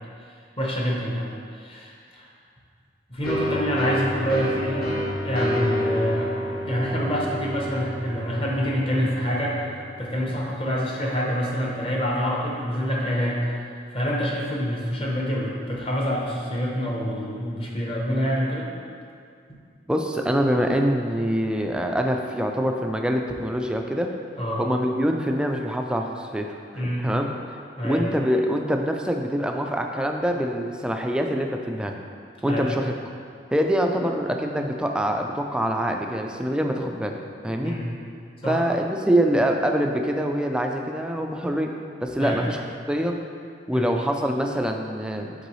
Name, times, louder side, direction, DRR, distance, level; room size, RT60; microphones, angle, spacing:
voice 1, 0.6-1.3 1.5-2.3 3.1-4.9 5.2-6.3 6.6-9.6 10.0-13.5 13.9-18.7 24.4-24.6 26.7-27.1 27.8-28.0 32.5-32.7 37.6-37.9 38.4-38.6 42.2-42.5 43.7-43.9, equal, 30° left, -3 dB, 0.9 m, -26 dB
sound 1, 3.2-10.7, equal, 55° left, 1.3 m, -29 dB
voice 2, 19.9-24.1 24.6-26.5 26.7-27.3 27.8-31.9 32.4-32.9 33.5-37.7 38.5-41.7 42.0-43.2 43.7-45.3, equal, 5° right, 3 dB, 0.3 m, -25 dB
6.7 x 4.6 x 3.1 m, 2.3 s
head